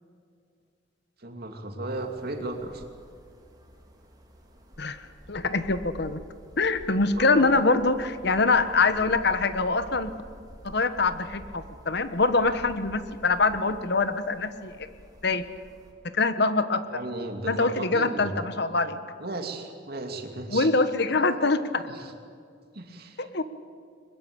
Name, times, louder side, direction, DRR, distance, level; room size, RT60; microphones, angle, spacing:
voice 1, 1.2-2.8 7.2-7.5 16.9-18.3 19.2-20.7 21.9-22.1 22.7-23.3, right 2 dB, 55° right, 4 dB, 2.8 m, -35 dB
sound 1, 1.9-15.9, equal, 20° right, 3.5 m, -49 dB
voice 2, 5.3-6.2 6.6-10.1 10.6-14.9 15.2-15.5 16.1-16.8 17.5-19.0 20.5-21.9 23.2-23.4, left 3 dB, 60° left, 11 dB, 1.3 m, -24 dB
22.0 x 21.0 x 8.8 m, 2.3 s
head